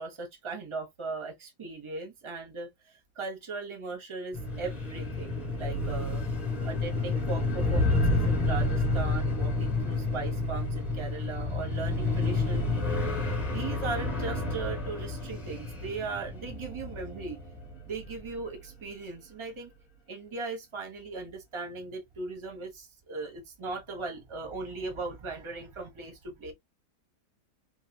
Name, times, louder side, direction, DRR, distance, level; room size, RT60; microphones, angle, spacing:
voice 1, 0.0-6.2 6.6-13.0 13.5-17.4 17.9-19.7 20.1-26.5, right 3 dB, 25° right, 0.7 m, -38 dB
sound 1, 4.3-18.4, left 2 dB, 25° left, 1.1 m, -30 dB
3.2 x 2.5 x 2.9 m
omnidirectional pair, 2.0 m